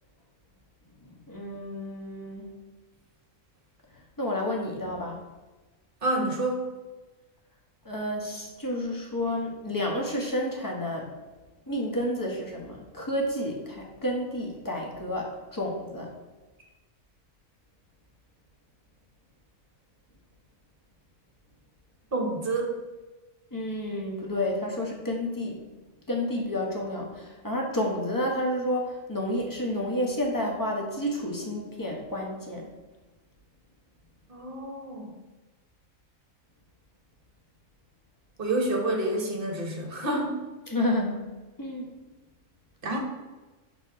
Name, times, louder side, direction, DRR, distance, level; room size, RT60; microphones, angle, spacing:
voice 1, 1.3-2.6 4.2-5.2 7.8-11.1 11.7-16.1 23.5-25.6 26.1-32.7 40.7-41.3 41.6-41.9, left 1 dB, 15° left, 0 dB, 1.1 m, -30 dB
voice 2, 6.0-6.7 22.1-22.8 34.3-35.2 38.4-40.4 42.8-43.0, right 2 dB, 45° right, 1 dB, 1.4 m, -28 dB
6.2 x 4.4 x 4.6 m, 1.2 s
omnidirectional pair, 1.4 m